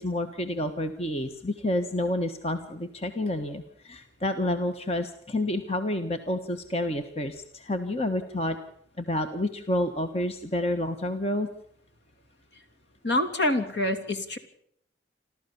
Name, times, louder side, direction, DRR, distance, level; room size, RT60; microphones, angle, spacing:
voice 1, 0.0-8.6 9.0-11.5, left 1 dB, 35° left, 7 dB, 1.3 m, -29 dB
voice 2, 13.0-14.4, left 1 dB, 70° left, 7 dB, 2.9 m, -26 dB
28.5 x 13.5 x 7.0 m, 0.67 s
head